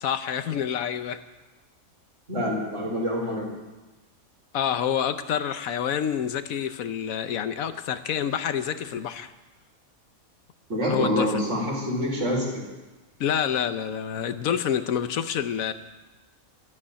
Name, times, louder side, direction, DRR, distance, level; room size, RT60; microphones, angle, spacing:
voice 1, 0.0-1.2 4.5-9.3 10.9-11.4 13.2-15.7, left 9 dB, 80° left, 11 dB, 1.2 m, -27 dB
voice 2, 2.3-3.5 10.7-12.6, equal, 60° right, -3 dB, 4.9 m, -26 dB
13.5 x 8.6 x 9.8 m, 1.2 s
omnidirectional pair, 1.5 m